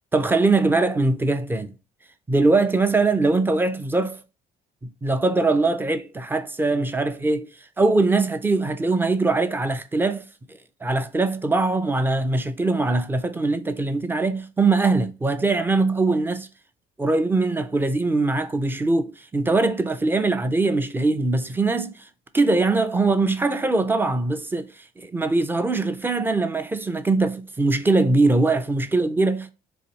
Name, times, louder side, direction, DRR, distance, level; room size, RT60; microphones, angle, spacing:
voice 1, 0.1-1.7 2.3-4.2 5.0-7.5 7.8-10.2 10.8-16.5 17.0-21.9 22.3-24.7 25.0-29.5, right 3 dB, 10° right, 0.4 m, -22 dB
4.0 x 2.7 x 2.9 m
cardioid pair, 110°, 17 cm